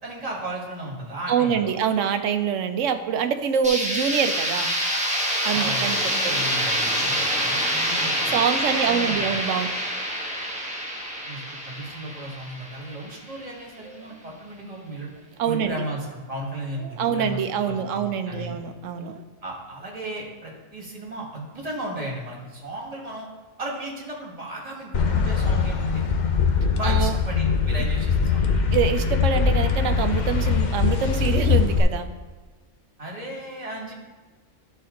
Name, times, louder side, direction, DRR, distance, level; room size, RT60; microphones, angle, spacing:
voice 1, 0.0-1.7 5.5-8.3 8.7-9.3 11.3-15.1 15.4-18.6 19.4-23.3 23.6-26.0 26.8-28.4 33.0-33.9, right 1 dB, 30° right, -3 dB, 1.7 m, -35 dB
voice 2, 1.3-4.7 5.4-6.3 8.2-9.7 13.8-14.2 15.4-15.8 16.8-19.2 26.8-27.2 28.7-32.1, right 7 dB, 75° right, 8 dB, 1.0 m, -25 dB
sound 1, 3.6-13.4, equal, 5° right, 1.1 m, -26 dB
sound 2, 24.9-31.8, left 6 dB, 45° left, 0.6 m, -22 dB
12.0 x 4.3 x 3.8 m, 1.3 s
omnidirectional pair, 1.3 m